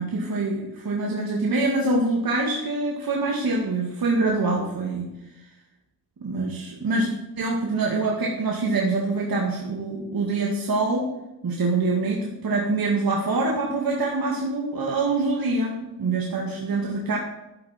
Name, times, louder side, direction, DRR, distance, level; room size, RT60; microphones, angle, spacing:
voice 1, 0.0-5.1 6.2-7.1 7.4-11.1 11.4-17.2, right 3 dB, 50° right, -1 dB, 2.1 m, -25 dB
11.5 x 7.8 x 4.4 m, 0.94 s
cardioid pair, 75°, 46 cm